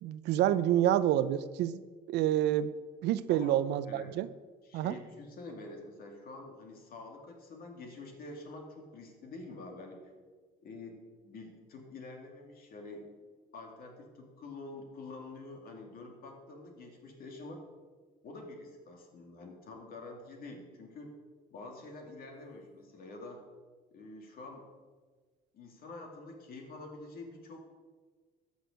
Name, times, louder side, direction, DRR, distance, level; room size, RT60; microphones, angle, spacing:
voice 1, 0.0-1.8 2.1-2.7 3.0-4.3 4.7-4.9, right 12 dB, 85° right, 15 dB, 0.6 m, -28 dB
voice 2, 3.3-3.6 3.9-4.2 4.6-10.1 10.6-13.1 13.5-17.6 18.2-21.1 21.5-23.4 23.9-24.7 25.5-27.7, left 2 dB, 60° left, 2 dB, 2.4 m, -47 dB
13.5 x 6.5 x 6.4 m, 1.4 s
cardioid pair, 110°, 17 cm